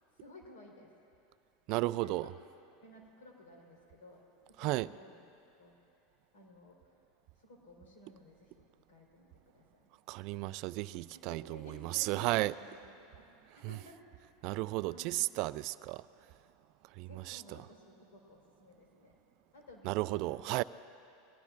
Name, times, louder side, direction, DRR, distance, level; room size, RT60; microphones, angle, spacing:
voice 1, 0.2-0.9 1.8-2.3 2.8-4.2 4.6-5.2 5.6-5.7 6.3-6.8 7.4-9.3 9.5-9.9 11.1-14.0 14.8-15.2 17.1-19.2 19.5-20.4, left 1 dB, 80° left, 4.2 m, -55 dB
voice 2, 1.7-2.3 4.6-4.9 10.1-12.5 13.5-13.8 14.4-16.1 16.9-17.6 19.8-20.6, right 19 dB, 55° right, 0.3 m, -34 dB
23.0 x 17.5 x 2.5 m
supercardioid pair, 115°, 0 cm